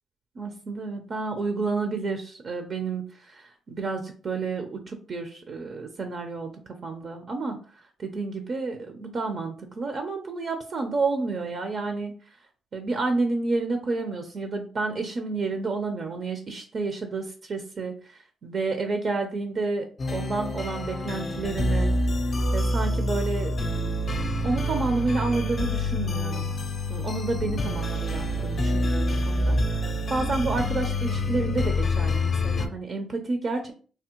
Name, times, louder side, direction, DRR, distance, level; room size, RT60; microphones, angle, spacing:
voice 1, 0.4-6.5 6.8-7.6 8.0-12.1 12.7-17.9 18.4-21.9 22.5-23.5 24.4-26.5 26.9-33.7, right 3 dB, 50° right, 5 dB, 0.5 m, -30 dB
sound 1, 20.0-32.7, left 1 dB, 40° left, 0.5 m, -27 dB
3.3 x 2.1 x 2.9 m, 0.40 s
cardioid pair, 90°, 0 cm